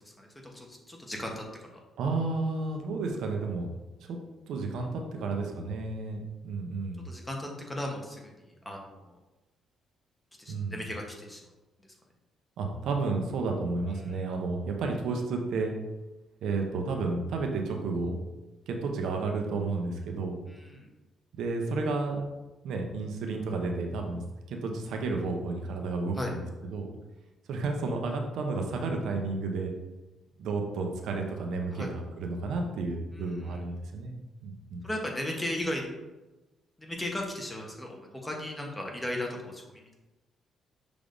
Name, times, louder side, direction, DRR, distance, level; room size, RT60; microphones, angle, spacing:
voice 1, 0.2-1.8 7.0-8.3 8.6-9.2 10.4-11.4 14.0-14.2 20.5-20.9 26.2-26.3 31.7-31.9 33.1-33.6 34.8-35.9 36.8-40.0, left 1 dB, 10° left, 0 dB, 0.9 m, -36 dB
voice 2, 2.0-3.8 4.1-4.2 4.5-7.0 10.5-10.8 12.6-15.7 16.4-18.2 18.7-20.4 21.4-22.3 22.6-24.2 24.5-26.9 27.5-29.7 30.4-34.1 34.4-34.8, right 3 dB, 75° right, 2 dB, 0.6 m, -32 dB
6.0 x 3.3 x 2.6 m, 1.1 s
cardioid pair, 90°, 0 cm